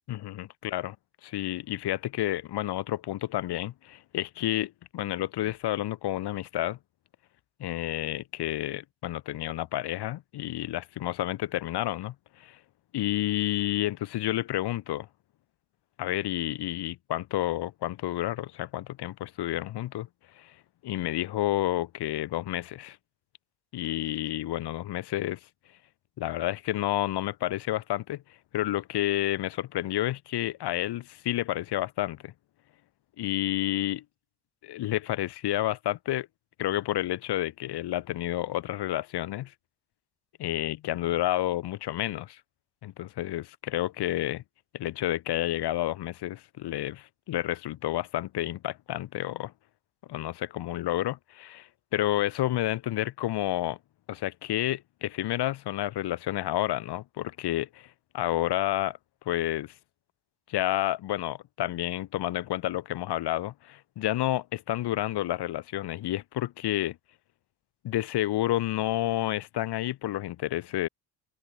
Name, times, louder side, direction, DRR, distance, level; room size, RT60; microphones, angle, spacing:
voice 1, 0.1-1.0 1.2-6.8 7.6-12.6 12.9-15.1 16.0-20.1 20.4-20.5 20.8-23.0 23.7-25.4 26.2-28.2 28.5-32.3 33.2-34.0 34.6-36.3 36.6-39.5 40.4-42.4 42.8-44.4 44.7-49.5 50.1-53.8 54.1-59.0 59.3-59.7 60.5-67.0 67.8-70.9, left 14 dB, 65° left, 2.5 m, -30 dB
open air
cardioid pair, 145°, 43 cm